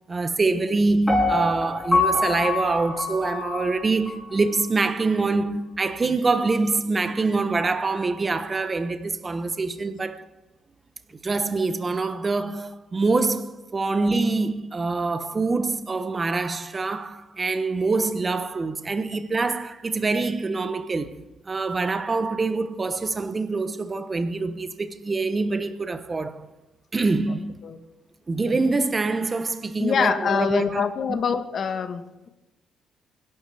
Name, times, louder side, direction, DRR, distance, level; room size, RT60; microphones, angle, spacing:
voice 1, 0.1-10.3 11.2-21.2 21.5-26.5 26.9-27.5 28.3-31.2, right 3 dB, 30° right, 1.1 m, -25 dB
Piano, 1.1-4.1 4.6-4.7, left 3 dB, 10° left, 6.6 m, -25 dB
voice 2, 29.8-32.3, left 6 dB, 55° left, 1.4 m, -25 dB
25.0 x 11.5 x 3.5 m
cardioid pair, 90°, 0 cm